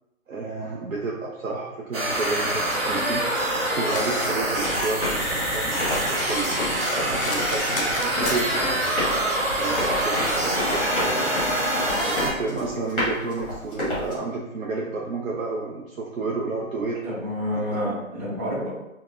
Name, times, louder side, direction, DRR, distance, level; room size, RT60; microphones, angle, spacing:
voice 1, 0.3-3.2 3.7-9.1 9.6-11.3 12.2-17.0 17.5-17.6, right 3 dB, 75° right, -3 dB, 0.6 m, -31 dB
sound 1, 1.9-12.3, right 1 dB, 45° right, 1.1 m, -25 dB
Domestic sounds home sounds, 2.7-8.7, left 2 dB, 45° left, 0.4 m, -37 dB
Run, 4.5-14.2, left 1 dB, 10° left, 0.8 m, -31 dB
voice 2, 17.0-18.7, equal, 25° right, -12 dB, 1.5 m, -28 dB
3.5 x 2.2 x 2.4 m, 0.92 s
hypercardioid pair, 155°, 41 cm